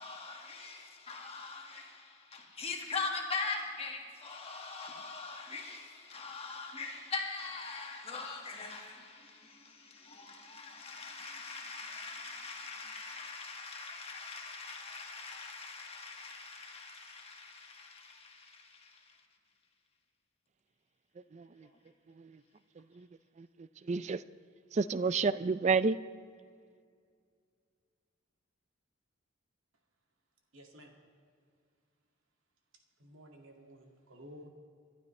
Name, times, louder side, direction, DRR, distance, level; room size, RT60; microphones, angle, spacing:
voice 1, 0.0-19.2, left 4 dB, 30° left, 1.7 m, -42 dB
voice 2, 21.3-21.7 22.2-22.3 23.0-23.1 23.4-23.5 23.9-24.2 24.7-26.0, right 4 dB, 35° right, 0.3 m, -30 dB
voice 3, 30.5-30.9 33.0-34.5, equal, 70° right, 2.2 m, -53 dB
28.0 x 12.0 x 3.2 m
head